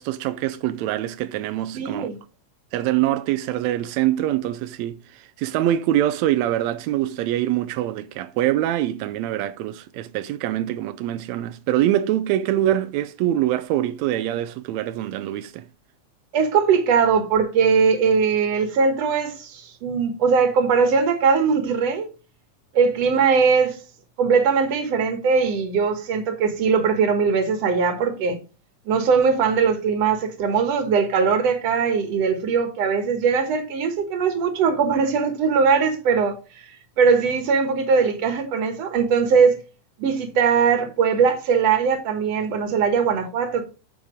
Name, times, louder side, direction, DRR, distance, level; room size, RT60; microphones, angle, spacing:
voice 1, 0.0-2.1 2.7-15.6, right 13 dB, 80° right, 1.6 m, -24 dB
voice 2, 1.7-2.2 16.3-22.1 22.7-23.8 24.2-28.4 28.9-36.4 37.0-39.6 40.0-43.6, right 5 dB, 60° right, 2.4 m, -20 dB
9.6 x 5.4 x 5.1 m
omnidirectional pair, 3.6 m